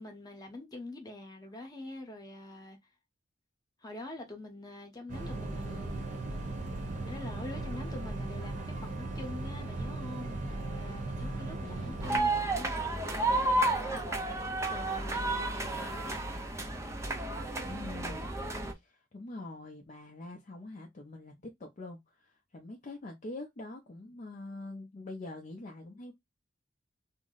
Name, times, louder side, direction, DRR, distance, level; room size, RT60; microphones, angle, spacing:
voice 1, 0.0-2.8 3.8-6.4 7.1-16.2, left 2 dB, 20° left, 0.8 m, -45 dB
sound 1, 5.1-12.2, right 2 dB, 45° right, 0.8 m, -37 dB
voice 2, 11.6-12.0 17.7-18.3 18.7-26.1, left 2 dB, 40° left, 0.5 m, -44 dB
sound 2, 12.0-18.7, right 2 dB, 15° right, 0.4 m, -32 dB
2.6 x 2.0 x 3.7 m
head